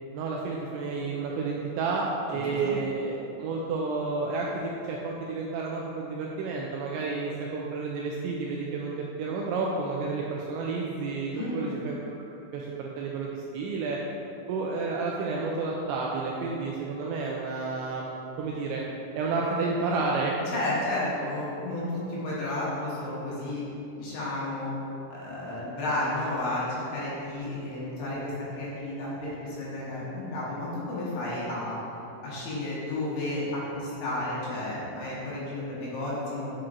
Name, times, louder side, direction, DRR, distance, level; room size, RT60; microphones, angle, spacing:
voice 1, 0.1-12.0 12.5-14.0 14.5-18.1 18.4-18.8 19.1-20.3, right 4 dB, 85° right, -2 dB, 2.6 m, -31 dB
voice 2, 2.3-2.7 11.3-11.7 20.5-23.6 24.0-24.7 25.1-31.8 32.2-36.5, left 1 dB, 70° left, -8 dB, 3.6 m, -32 dB
9.6 x 5.8 x 2.6 m, 2.8 s
omnidirectional pair, 5.6 m